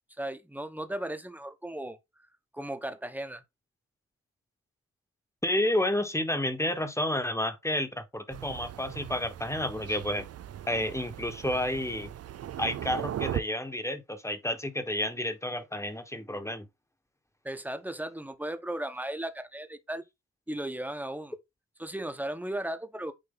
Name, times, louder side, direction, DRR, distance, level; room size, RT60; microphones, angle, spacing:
voice 1, 0.2-2.0 2.5-3.4 17.4-20.0 20.5-21.3 21.8-23.1, right 1 dB, 5° right, 1.3 m, -36 dB
voice 2, 5.4-10.3 10.7-12.1 12.6-16.7, left 1 dB, 10° left, 1.5 m, -30 dB
Thunder, 8.3-13.4, right 10 dB, 55° right, 0.5 m, -38 dB
8.9 x 3.1 x 3.9 m
cardioid pair, 65°, 29 cm